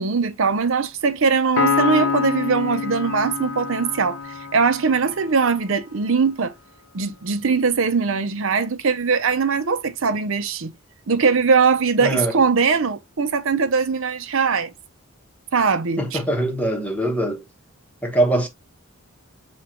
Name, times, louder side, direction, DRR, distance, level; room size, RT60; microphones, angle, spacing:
voice 1, 0.0-6.5 6.9-10.7 11.1-14.7 15.5-16.2, right 5 dB, 65° right, 0.6 m, -21 dB
Piano, 1.6-5.2, left 5 dB, 55° left, 0.6 m, -25 dB
voice 2, 12.0-12.3 16.0-17.4 18.0-18.5, right 1 dB, 5° left, 1.0 m, -22 dB
7.0 x 2.4 x 2.9 m
head